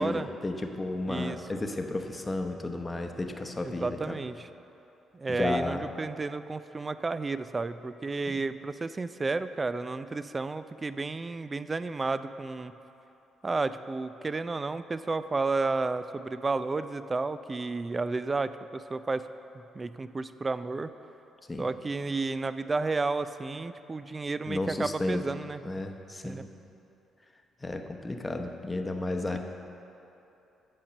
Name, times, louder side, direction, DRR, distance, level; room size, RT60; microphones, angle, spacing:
voice 1, 0.0-4.2 5.3-5.9 8.3-8.4 21.5-21.7 24.5-25.3 25.6-26.5 27.6-29.4, left 2 dB, 20° left, 4 dB, 0.8 m, -33 dB
voice 2, 1.1-1.4 3.6-4.5 5.1-12.7 13.4-19.3 19.5-20.9 21.6-25.6 26.2-26.4, right 3 dB, 30° right, 13 dB, 0.4 m, -32 dB
8.6 x 5.2 x 7.3 m, 2.9 s
supercardioid pair, 60°, 0 cm